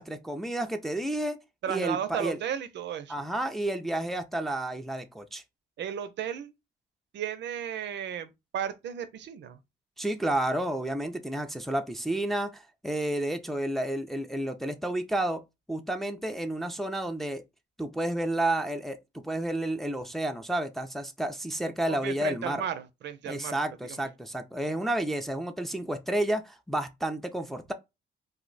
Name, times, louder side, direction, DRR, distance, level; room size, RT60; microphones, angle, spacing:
voice 1, 0.0-1.4 1.7-2.4 3.1-5.4 10.0-15.4 15.7-17.4 17.8-19.0 19.2-22.6 23.3-27.7, right 1 dB, ahead, 0.4 m, -31 dB
voice 2, 1.6-3.2 5.8-6.5 7.1-9.6 21.9-23.6 23.8-24.1, right 9 dB, 65° right, 0.5 m, -34 dB
2.6 x 2.1 x 3.9 m
cardioid pair, 90°, 20 cm